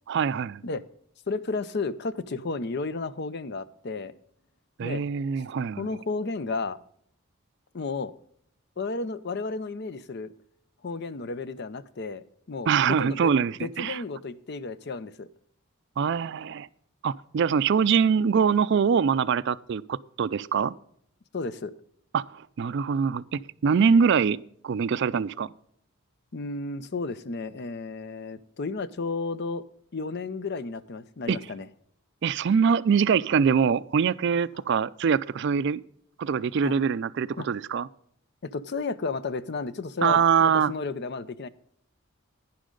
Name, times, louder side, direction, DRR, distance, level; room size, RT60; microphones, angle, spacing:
voice 1, 0.1-0.6 4.8-5.9 12.7-14.0 16.0-16.7 17.0-20.8 22.1-24.4 24.6-25.5 31.3-31.4 32.2-35.8 36.2-37.9 40.0-40.7, right 6 dB, 55° right, 18 dB, 0.4 m, -24 dB
voice 2, 1.3-4.1 4.8-5.0 5.8-6.8 7.7-8.1 8.8-10.3 10.8-13.3 13.6-15.3 17.5-17.6 21.3-21.7 23.8-24.0 26.3-29.7 29.9-31.7 36.6-36.8 37.4-37.5 38.4-41.5, left 3 dB, 50° left, 16 dB, 0.5 m, -33 dB
11.5 x 10.0 x 3.8 m, 0.67 s
head